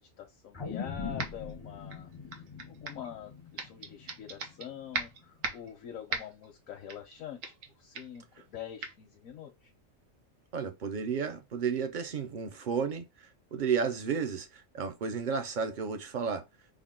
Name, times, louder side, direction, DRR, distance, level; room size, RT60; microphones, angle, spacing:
voice 1, 0.0-2.1 2.6-7.4 7.8-9.7, left 9 dB, 90° left, 1.1 m, -45 dB
sound 1, 0.5-5.0 5.5-5.6, left 5 dB, 35° left, 0.4 m, -42 dB
sound 2, 1.2-1.5 1.9-3.1 3.6-4.7 4.9-5.7 6.1-6.5 6.9-7.1 7.4-7.7 7.9-8.2 8.8-8.9, right 4 dB, 75° right, 1.2 m, -38 dB
voice 2, 10.5-13.1 13.5-16.4, right 6 dB, 50° right, 0.6 m, -32 dB
3.6 x 2.3 x 3.5 m
omnidirectional pair, 1.4 m